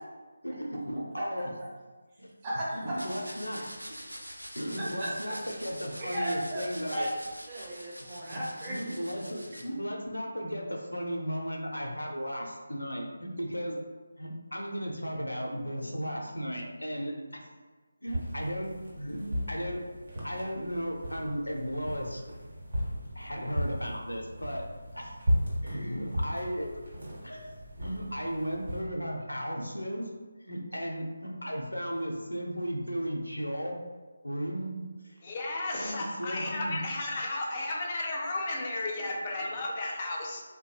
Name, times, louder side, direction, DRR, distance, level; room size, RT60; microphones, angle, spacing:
voice 1, 0.4-1.5 2.2-2.3 2.7-3.7 4.5-7.1 8.3-8.4 8.7-13.8 14.2-17.5 18.0-19.8 20.2-22.2 23.2-24.6 24.9-25.2 25.6-26.8 27.2-30.1 30.4-33.8 34.2-34.8 35.0-35.2 35.7-36.8, equal, 80° left, 1 dB, 0.5 m, -35 dB
voice 2, 2.4-3.1 4.8-5.3 6.0-6.6 6.9-7.1 7.5-8.8, right 1 dB, 20° right, -6 dB, 0.6 m, -35 dB
sound 1, 3.0-9.6, equal, 90° right, 0.5 m, -45 dB
sound 2, 18.1-28.8, equal, 50° right, 1.0 m, -36 dB
voice 3, 35.2-40.4, left 2 dB, 25° left, -2 dB, 0.3 m, -33 dB
3.0 x 2.2 x 2.8 m, 1.3 s
figure-of-eight pair, 155°, 0 cm